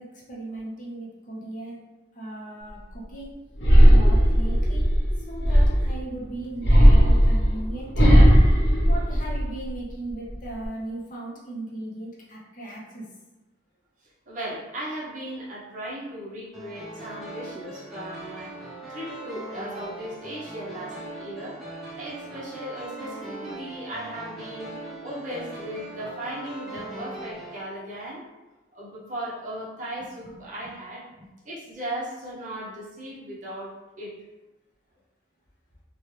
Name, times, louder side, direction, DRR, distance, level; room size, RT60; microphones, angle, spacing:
voice 1, 0.0-1.8 2.1-3.3 3.8-4.9 5.3-7.9 8.9-13.0 26.8-26.9 31.2-31.3, right 2 dB, 45° left, -5 dB, 0.7 m, -37 dB
sound 1, 3.6-6.0 6.6-9.7 10.1-10.7, equal, 65° left, 1.0 m, -16 dB
voice 2, 14.3-18.5 18.9-21.6 22.0-28.3 28.7-31.1 31.4-34.2, right 1 dB, 45° right, -7 dB, 0.9 m, -37 dB
sound 2, 16.5-27.6, right 2 dB, ahead, 0.7 m, -40 dB
3.2 x 2.2 x 3.2 m, 1.1 s
head